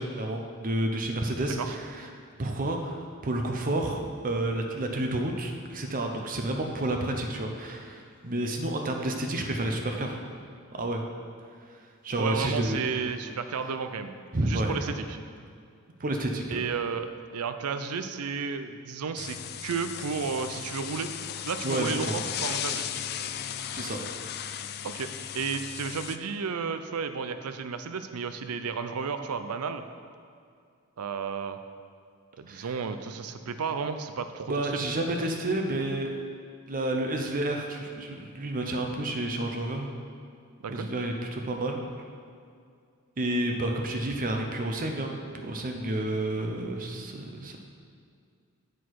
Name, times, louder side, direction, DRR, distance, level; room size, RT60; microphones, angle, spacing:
voice 1, 0.0-2.1 2.4-10.2 10.7-11.0 12.0-12.8 14.3-14.9 16.0-16.6 21.6-22.2 23.7-24.0 32.5-32.7 34.5-36.2 36.7-39.9 40.7-41.8 43.2-47.6, right 1 dB, 40° right, 3 dB, 0.7 m, -30 dB
voice 2, 12.2-14.1 14.4-15.2 16.5-17.1 17.3-21.1 21.4-22.9 24.8-29.8 31.0-31.6 32.4-34.9 40.6-40.9, right 5 dB, 90° right, 9 dB, 0.5 m, -33 dB
sound 1, 19.2-26.2, left 9 dB, 45° left, 0.4 m, -36 dB
8.2 x 6.2 x 4.7 m, 2.3 s
head